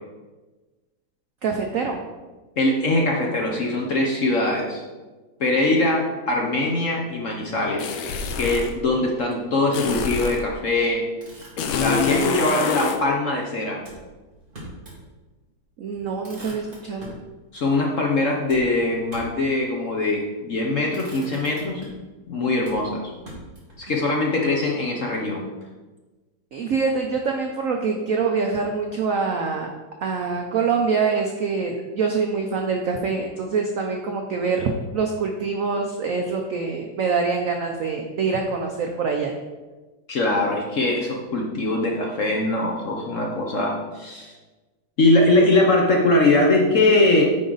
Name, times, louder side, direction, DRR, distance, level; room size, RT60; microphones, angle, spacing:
voice 1, 1.4-2.0 15.8-17.1 26.5-29.7 30.0-39.3, right 5 dB, 70° right, 2 dB, 0.7 m, -25 dB
voice 2, 2.6-4.8 5.4-7.9 8.4-11.0 11.6-13.8 17.5-21.8 22.3-23.1 23.8-25.4 40.1-44.3 45.0-47.2, left 2 dB, 55° left, 0 dB, 0.9 m, -22 dB
sound 1, 7.8-8.7 9.7-10.5 11.6-13.0, left 5 dB, 85° left, 1.5 m, -25 dB
Motor vehicle (road), 11.2-12.2 13.8-15.0 15.4-15.5 15.9-17.3 18.5-19.5 20.3-20.6 20.9-22.1 22.6-23.8, right 1 dB, 25° right, 1.9 m, -43 dB
9.2 x 4.9 x 3.9 m, 1.2 s
omnidirectional pair, 2.2 m